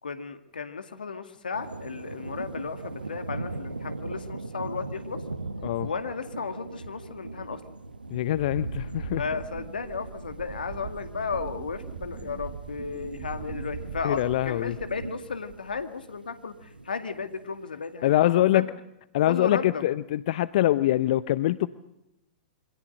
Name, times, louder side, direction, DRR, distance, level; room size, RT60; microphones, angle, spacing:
voice 1, 0.0-5.2 5.8-7.6 9.2-18.7 19.3-19.9, left 5 dB, 80° left, 8 dB, 2.1 m, -34 dB
sound 1, 1.5-17.6, right 2 dB, 90° right, 1.4 m, -40 dB
voice 2, 8.1-9.2 14.0-14.7 18.0-18.7 19.1-21.7, left 14 dB, 55° left, 15 dB, 0.8 m, -24 dB
Wind, 8.3-15.2 15.5-16.0, right 9 dB, 60° right, 1.7 m, -42 dB
27.5 x 25.5 x 6.6 m, 0.88 s
figure-of-eight pair, 105°, 5 cm